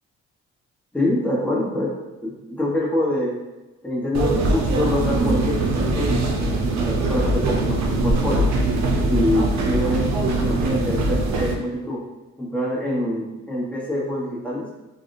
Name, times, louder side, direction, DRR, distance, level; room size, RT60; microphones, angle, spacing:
voice 1, 0.9-2.0 2.2-3.4 3.8-6.1 6.9-8.5 9.1-12.0 12.4-14.7, left 1 dB, 5° left, -4 dB, 0.9 m, -25 dB
sound 1, 4.1-11.5, right 2 dB, 65° right, 0.6 m, -22 dB
3.4 x 2.3 x 2.6 m, 1.1 s
cardioid pair, 90°, 30 cm